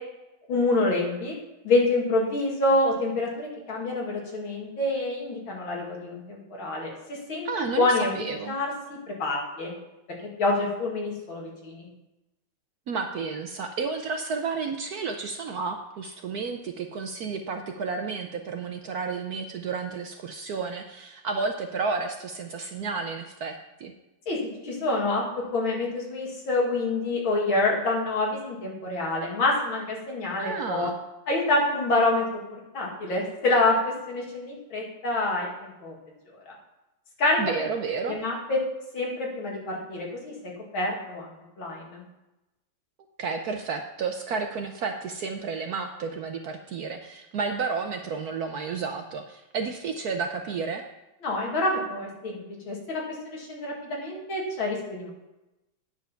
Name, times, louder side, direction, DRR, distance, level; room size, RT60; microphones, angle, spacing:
voice 1, 0.5-1.4 1.6-7.5 7.8-8.1 8.4-9.7 10.4-11.9 24.3-24.4 24.6-30.9 31.3-32.4 32.7-35.9 36.5-36.6 37.2-37.4 38.1-38.6 38.9-41.3 41.6-42.0 51.2-55.1, left 2 dB, 80° left, -2 dB, 3.0 m, -27 dB
voice 2, 7.4-8.6 12.9-23.9 30.4-31.0 37.4-38.2 43.2-50.8, right 4 dB, 65° right, 5 dB, 1.0 m, -31 dB
9.2 x 7.3 x 5.7 m, 0.96 s
omnidirectional pair, 2.2 m